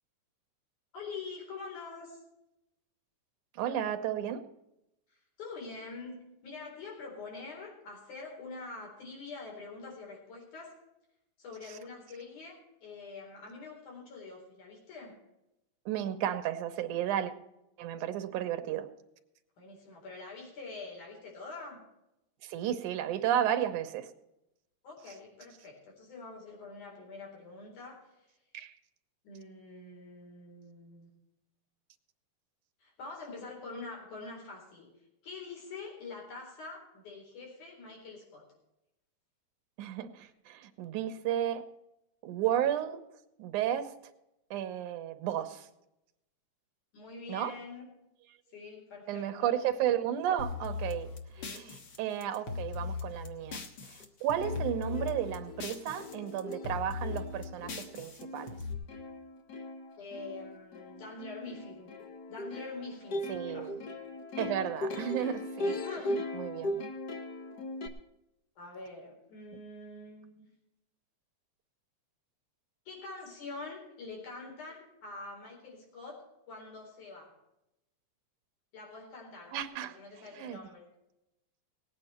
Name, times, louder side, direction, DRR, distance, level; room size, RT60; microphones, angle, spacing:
voice 1, 0.9-2.2 5.1-10.7 11.4-15.2 19.6-21.8 24.8-28.3 29.2-31.1 32.8-34.9 35.2-38.5 46.9-47.8 48.5-49.5 51.4-51.7 60.0-61.9 62.3-63.7 65.6-66.1 68.6-70.4 72.9-77.3 78.7-79.6 79.8-80.9, left 3 dB, 80° left, -1 dB, 5.6 m, -45 dB
voice 2, 3.5-4.4 15.9-17.3 17.8-18.9 22.4-24.1 28.5-28.7 39.8-41.6 42.2-43.0 43.4-43.9 44.5-45.7 47.3-47.5 49.1-51.1 51.4-53.6 53.9-58.6 63.3-63.8 64.4-65.7 66.0-66.8 79.5-80.0 80.3-80.6, right 10 dB, 90° right, 9 dB, 2.4 m, -33 dB
sound 1, 50.4-54.0 54.3-56.1 56.4-58.7, left 4 dB, 50° left, 1.7 m, -39 dB
Plucked string instrument, 54.0-54.1 54.4-67.9, left 1 dB, 65° left, 0.9 m, -39 dB
19.0 x 9.0 x 4.4 m, 0.88 s
omnidirectional pair, 3.4 m